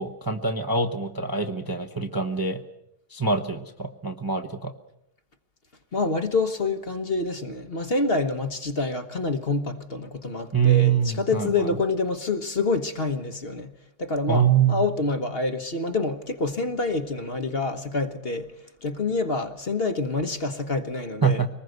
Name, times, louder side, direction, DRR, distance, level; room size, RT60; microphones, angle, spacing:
voice 1, 0.0-2.6 3.1-4.7 10.5-11.7 14.3-14.8 21.2-21.5, right 6 dB, 15° right, 1.0 m, -24 dB
voice 2, 5.9-18.5 18.8-21.4, left 3 dB, 40° left, 1.4 m, -27 dB
24.0 x 20.0 x 7.9 m
omnidirectional pair, 1.6 m